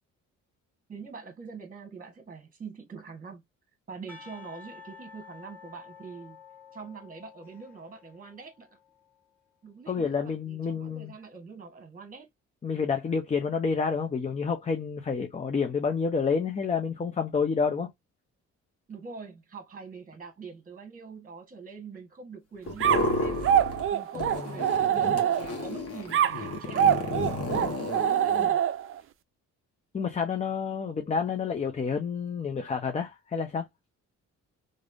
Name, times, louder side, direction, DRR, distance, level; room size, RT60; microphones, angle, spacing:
voice 1, 0.9-3.4 3.9-6.4 6.7-8.8 9.6-12.3 18.9-23.4 23.9-28.6, right 5 dB, 30° right, 1.2 m, -44 dB
Percussion / Church bell, 4.1-9.1, left 6 dB, 5° left, 1.4 m, -50 dB
voice 2, 9.9-11.1 12.6-17.9 24.2-24.5 29.9-33.7, left 5 dB, 25° left, 0.5 m, -29 dB
sound 1, 22.7-23.9 24.1-28.5, left 2 dB, 50° left, 1.2 m, -32 dB
sound 2, 22.8-25.7 26.1-29.0, right 9 dB, 45° right, 0.4 m, -25 dB
3.1 x 2.6 x 2.5 m
cardioid pair, 90°, 30 cm